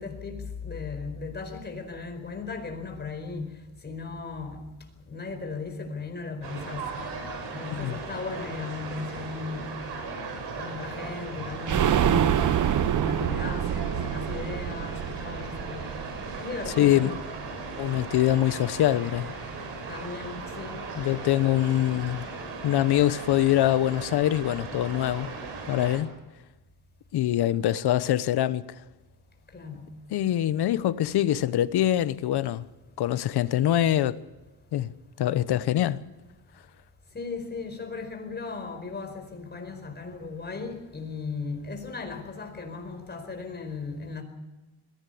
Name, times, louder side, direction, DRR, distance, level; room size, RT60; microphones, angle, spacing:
voice 1, 0.0-3.5 3.8-4.6 5.0-6.9 7.5-9.7 10.6-12.4 12.7-15.9 16.3-17.2 19.9-20.8 29.5-29.9 37.1-44.2, left 4 dB, 25° left, 4.8 m, -36 dB
sound 1, 6.4-26.0, right 4 dB, 85° right, 6.5 m, -37 dB
sound 2, 11.7-17.3 17.6-17.7 18.0-18.1, right 9 dB, 50° right, 1.0 m, -27 dB
voice 2, 16.8-17.2 17.8-19.3 21.0-22.2 22.6-25.3 25.7-26.1 27.1-28.8 30.1-32.6 33.0-34.2 34.7-34.9 35.2-36.0, left 12 dB, 70° left, 1.0 m, -24 dB
22.0 x 16.5 x 8.5 m
cardioid pair, 125°, 41 cm